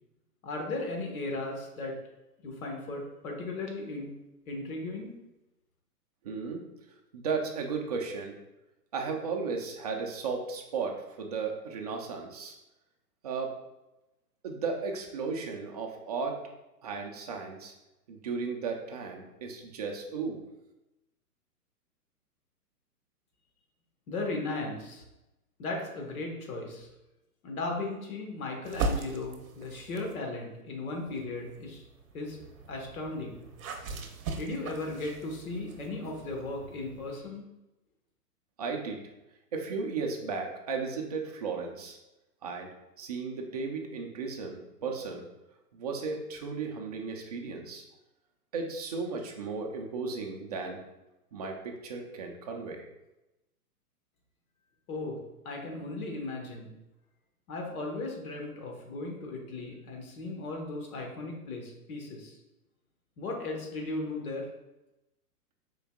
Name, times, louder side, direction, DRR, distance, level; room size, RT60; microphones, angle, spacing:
voice 1, 0.4-2.0 2.4-4.1 4.5-5.1 24.1-25.0 25.6-26.9 27.4-31.8 32.1-33.4 34.3-37.4 54.9-56.7 57.5-62.4 63.2-64.5, left 2 dB, 60° left, 1 dB, 1.3 m, -36 dB
voice 2, 6.2-6.6 7.1-8.4 8.9-12.5 13.2-13.5 14.4-16.4 16.8-17.7 18.1-20.4 38.6-39.0 39.5-42.0 42.4-42.7 43.0-45.2 45.7-47.8 48.5-50.8 51.3-52.8, right 4 dB, 25° right, 2 dB, 0.4 m, -35 dB
sound 1, 28.6-30.2 30.9-37.1, right 3 dB, 60° right, 0.8 m, -39 dB
5.4 x 3.9 x 2.2 m, 0.95 s
hypercardioid pair, 125°, 47 cm